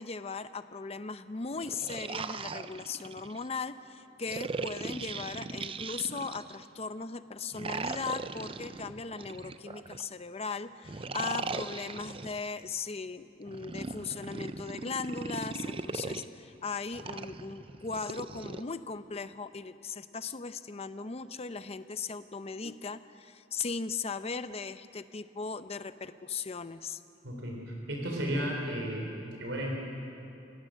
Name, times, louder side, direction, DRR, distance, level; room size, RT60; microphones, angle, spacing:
voice 1, 0.0-27.0, left 4 dB, 35° left, 12 dB, 0.6 m, -38 dB
sound 1, 1.5-3.5 4.3-6.6 7.5-10.1 10.9-12.5 13.5-16.3 16.9-18.6, right 4 dB, 30° right, 0.6 m, -39 dB
voice 2, 27.2-29.1 29.4-29.7, right 1 dB, 75° right, 0 dB, 3.7 m, -33 dB
28.0 x 17.5 x 6.4 m, 2.7 s
head